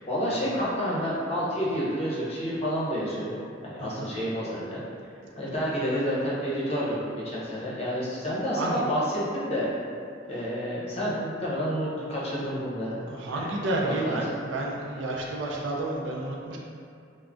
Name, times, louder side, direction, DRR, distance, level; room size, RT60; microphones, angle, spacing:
voice 1, 0.1-4.8 5.4-9.7 10.3-13.0 13.9-14.0, equal, 35° left, -8 dB, 0.7 m, -29 dB
voice 2, 13.1-16.6, right 2 dB, 90° right, -2 dB, 0.4 m, -30 dB
2.4 x 2.0 x 3.4 m, 2.4 s
head